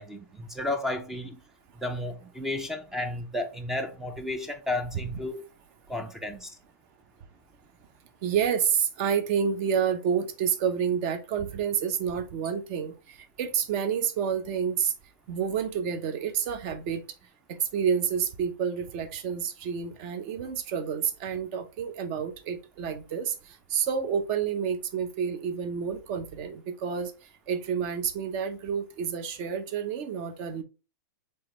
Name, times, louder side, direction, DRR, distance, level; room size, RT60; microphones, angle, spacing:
voice 1, 0.0-1.4 1.8-5.4 5.9-6.6, left 2 dB, 5° right, 0.5 m, -33 dB
voice 2, 8.2-14.9 15.3-17.0 17.7-23.3 23.7-27.1 27.5-30.6, right 7 dB, 40° right, 0.8 m, -29 dB
4.8 x 3.5 x 3.1 m
hypercardioid pair, 135°, 10 cm